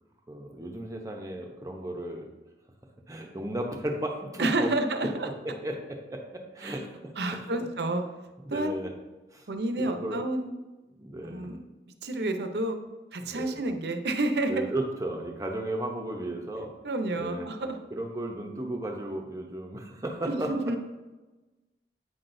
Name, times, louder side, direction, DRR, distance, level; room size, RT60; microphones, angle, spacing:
voice 1, 0.3-2.3 3.1-4.7 5.4-7.6 8.4-8.9 9.3-9.5 9.8-10.2 11.0-11.5 13.2-13.6 14.5-16.7 17.2-17.5 17.9-20.8, right 1 dB, 20° right, 2 dB, 0.8 m, -35 dB
voice 2, 4.4-5.3 6.6-6.8 7.2-8.0 8.5-8.8 9.5-10.5 11.2-11.6 12.0-12.8 13.1-14.5 16.8-17.8 20.3-20.8, right 2 dB, 70° right, 6 dB, 0.7 m, -29 dB
8.5 x 5.9 x 2.6 m, 1.1 s
head